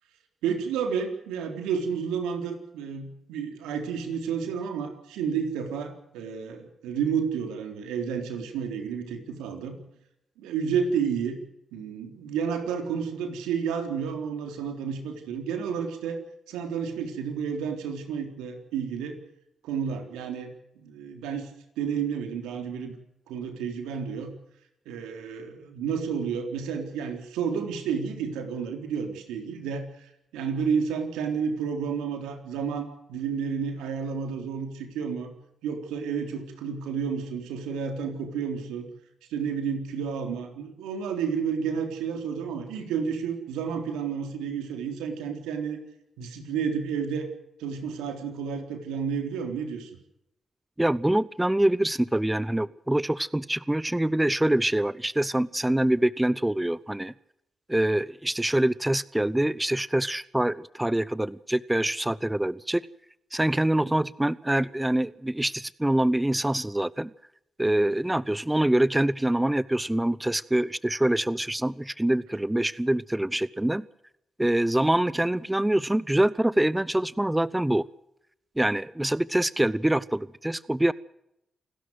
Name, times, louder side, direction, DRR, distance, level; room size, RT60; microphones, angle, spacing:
voice 1, 0.4-9.8 10.4-11.4 11.7-16.2 16.5-19.2 19.6-21.5 21.8-22.9 23.3-24.3 24.9-35.3 35.6-38.9 39.3-45.8 46.2-47.3 47.6-49.9, right 6 dB, 90° right, 5 dB, 3.7 m, -31 dB
voice 2, 50.8-57.1 57.7-62.8 63.3-67.1 67.6-73.9 74.4-77.9 78.6-80.9, right 1 dB, 10° right, 20 dB, 0.8 m, -25 dB
28.0 x 12.5 x 7.9 m, 0.80 s
supercardioid pair, 45°, 0 cm